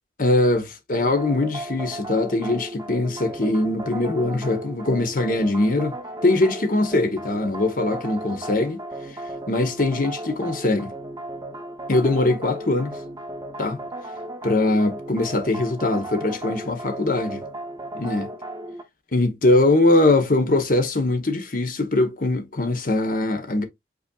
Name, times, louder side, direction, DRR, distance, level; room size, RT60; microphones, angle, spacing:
voice 1, 0.2-8.8 9.5-10.9 11.9-13.0 13.6-13.8 14.4-17.4 17.9-18.3 19.1-23.7, left 2 dB, 45° left, 0.9 m, -22 dB
sound 1, 0.9-18.8, right 1 dB, 20° right, 0.7 m, -35 dB
5.5 x 4.1 x 2.3 m
head